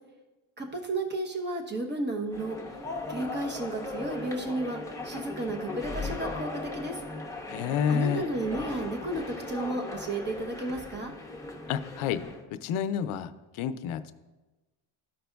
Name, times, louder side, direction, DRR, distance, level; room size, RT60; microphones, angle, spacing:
voice 1, 0.6-2.6 3.1-4.8 5.0-7.0 7.9-11.1, right 2 dB, 20° right, 2 dB, 0.9 m, -33 dB
sound 1, 2.3-12.4, left 2 dB, 5° left, 0.8 m, -38 dB
voice 2, 7.5-8.2 11.7-12.2 12.5-14.1, left 8 dB, 85° left, 12 dB, 0.6 m, -29 dB
13.5 x 5.1 x 2.3 m, 1.2 s
cardioid pair, 130°, 49 cm